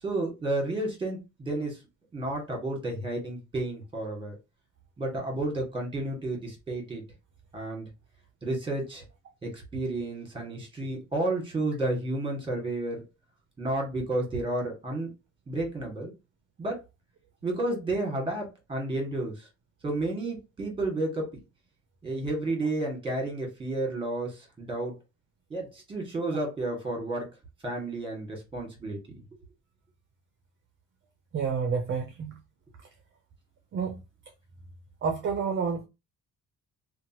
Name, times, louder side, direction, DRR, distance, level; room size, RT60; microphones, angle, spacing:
voice 1, 0.0-1.8 2.1-4.3 5.0-7.0 7.5-7.9 8.4-9.0 9.4-13.0 13.6-15.1 15.5-16.1 16.6-16.8 17.4-19.5 19.8-21.4 22.0-25.0 25.5-27.3 27.6-29.2, right 2 dB, 15° right, 1.5 m, -31 dB
voice 2, 31.3-32.3 33.7-34.0 35.0-35.9, right 5 dB, 40° right, 0.6 m, -29 dB
2.8 x 2.2 x 2.8 m
cardioid pair, 120°, 30 cm